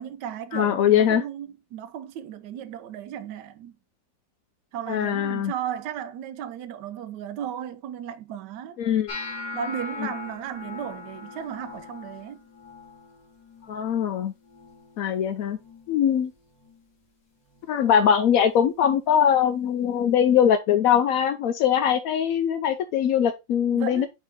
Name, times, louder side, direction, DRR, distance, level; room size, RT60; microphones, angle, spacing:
voice 1, 0.0-3.7 4.7-8.8 9.5-12.4 23.7-24.1, right 9 dB, 70° right, 1.2 m, -35 dB
voice 2, 0.5-1.2 4.9-5.5 8.8-9.1 13.6-14.3 15.0-15.6 15.9-16.3 17.7-24.1, left 9 dB, 75° left, 0.8 m, -22 dB
sound 1, 9.1-15.2 15.4-16.0 16.3-16.9 17.5-17.7 19.4-19.5, left 3 dB, 60° left, 2.5 m, -40 dB
7.3 x 3.7 x 3.5 m
omnidirectional pair, 2.0 m